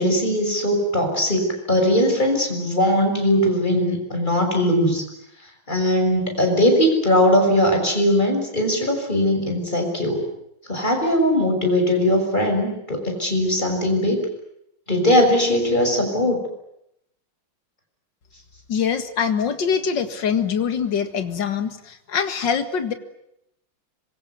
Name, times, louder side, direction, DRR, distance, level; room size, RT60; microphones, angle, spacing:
voice 1, 0.0-5.0 5.7-10.2 10.7-14.2 14.9-16.4, left 1 dB, 20° left, 3 dB, 6.6 m, -20 dB
voice 2, 18.7-22.9, left 7 dB, 60° left, 9 dB, 2.5 m, -24 dB
26.0 x 23.0 x 9.5 m, 0.79 s
omnidirectional pair, 2.2 m